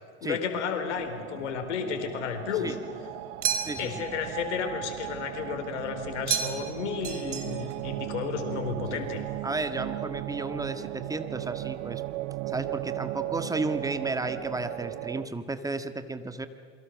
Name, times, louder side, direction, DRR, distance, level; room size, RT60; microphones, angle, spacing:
voice 1, 0.2-2.8 3.8-9.2, left 7 dB, 70° left, 6 dB, 4.1 m, -32 dB
sound 1, 0.8-15.3, right 18 dB, 55° right, 0.9 m, -36 dB
sound 2, 3.4-4.0 6.3-6.8 7.0-7.8, right 8 dB, 80° right, 3.3 m, -31 dB
voice 2, 3.6-4.0 8.9-9.0 9.4-12.0 12.5-16.5, right 2 dB, 10° right, 9 dB, 1.7 m, -33 dB
28.0 x 23.0 x 6.5 m, 2.2 s
hypercardioid pair, 85°, 36 cm